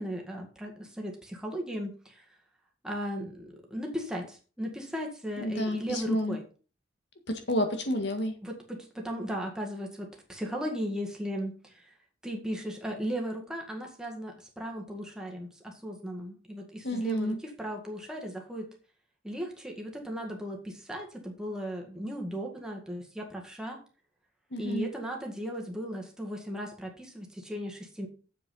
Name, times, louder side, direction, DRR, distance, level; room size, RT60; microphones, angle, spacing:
voice 1, 0.0-2.3 2.8-6.4 8.4-11.9 12.2-18.7 19.2-23.8 24.6-28.1, equal, 5° right, 0 dB, 1.9 m, -36 dB
voice 2, 5.4-6.4 7.3-8.3 16.8-17.4 24.5-24.9, equal, 60° left, 6 dB, 1.9 m, -30 dB
7.5 x 7.1 x 5.5 m, 0.37 s
head